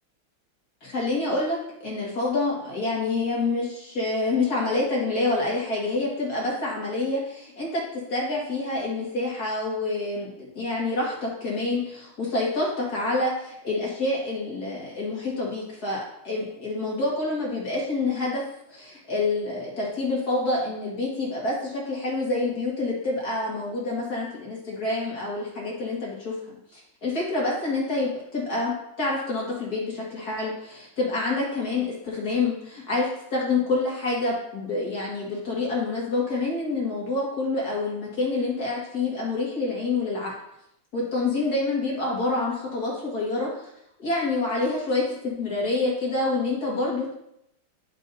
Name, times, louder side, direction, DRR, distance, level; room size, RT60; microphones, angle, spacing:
voice 1, 0.8-18.4 18.7-40.3 40.9-43.7 44.0-47.1, left 2 dB, 50° left, -4 dB, 2.3 m, -27 dB
9.7 x 5.3 x 2.7 m, 0.77 s
omnidirectional pair, 2.2 m